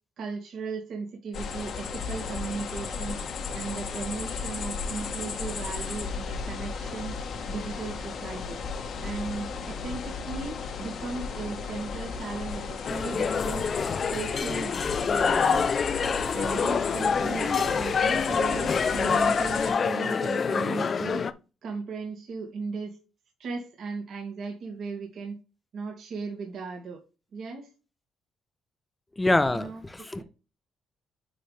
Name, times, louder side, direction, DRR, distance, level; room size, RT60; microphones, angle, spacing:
voice 1, 0.2-3.2 3.5-7.2 7.5-8.6 9.0-13.7 14.0-15.4 16.3-21.2 21.6-22.9 23.4-25.4 25.7-27.0 27.3-27.7 29.5-29.8 30.1-30.2, right 4 dB, 65° right, 2.4 m, -36 dB
sound 1, 1.3-19.7, left 5 dB, 65° left, 1.5 m, -35 dB
sound 2, 12.9-21.3, left 5 dB, 45° left, 0.6 m, -26 dB
voice 2, 29.2-30.2, left 2 dB, 15° left, 0.9 m, -25 dB
10.0 x 4.0 x 3.4 m
cardioid pair, 90°, 0 cm